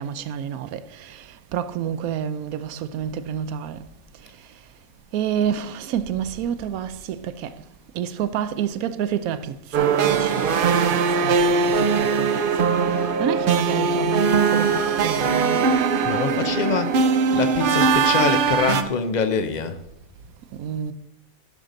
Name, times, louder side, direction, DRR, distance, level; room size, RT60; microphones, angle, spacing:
voice 1, 0.0-3.8 5.1-7.6 7.9-12.4 12.7-15.6 20.5-20.9, right 9 dB, 80° right, 1.1 m, -29 dB
sound 1, 9.7-18.8, right 5 dB, 50° right, 0.7 m, -20 dB
voice 2, 16.0-19.8, left 5 dB, 45° left, 0.6 m, -25 dB
11.5 x 6.7 x 3.8 m
omnidirectional pair, 1.5 m